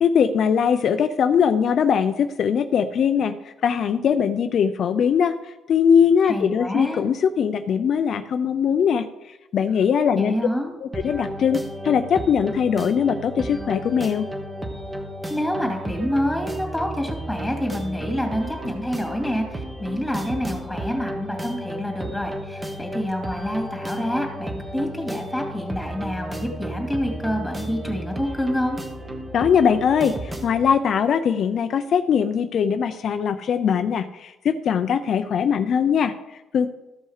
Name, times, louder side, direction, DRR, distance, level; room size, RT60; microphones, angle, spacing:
voice 1, 0.0-10.3 10.8-14.3 29.3-36.7, left 7 dB, 55° left, 9 dB, 0.5 m, -21 dB
voice 2, 6.2-7.0 10.2-10.7 15.3-28.8, equal, ahead, 2 dB, 2.5 m, -27 dB
sound 1, 10.9-30.6, right 1 dB, 15° right, 1.2 m, -33 dB
13.5 x 5.6 x 4.8 m, 1.0 s
cardioid pair, 110°, 0 cm